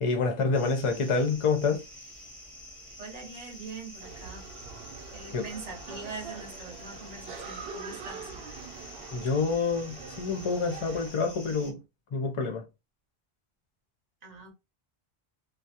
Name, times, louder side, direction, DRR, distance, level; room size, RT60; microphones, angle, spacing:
voice 1, 0.0-1.8 5.3-5.4 9.1-11.8 12.1-12.6, left 4 dB, 40° left, 0.5 m, -27 dB
sound 1, 0.5-11.7, left 1 dB, ahead, 0.7 m, -48 dB
voice 2, 3.0-4.5 5.1-8.3 14.2-14.5, right 4 dB, 45° right, 0.7 m, -43 dB
sound 2, 4.0-11.1, right 5 dB, 75° right, 0.8 m, -44 dB
2.3 x 2.0 x 2.7 m
omnidirectional pair, 1.1 m